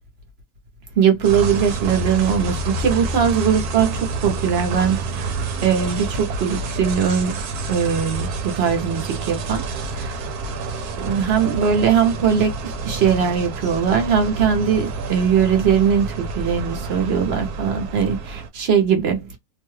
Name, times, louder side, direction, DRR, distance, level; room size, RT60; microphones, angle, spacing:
voice 1, 1.0-5.3 5.6-7.3 7.7-9.6 9.9-10.1 11.0-12.5 12.8-19.3, right 7 dB, 50° right, 1.0 m, -20 dB
sound 1, 1.2-18.5, right 3 dB, 85° right, 1.2 m, -28 dB
2.7 x 2.2 x 3.1 m
omnidirectional pair, 1.6 m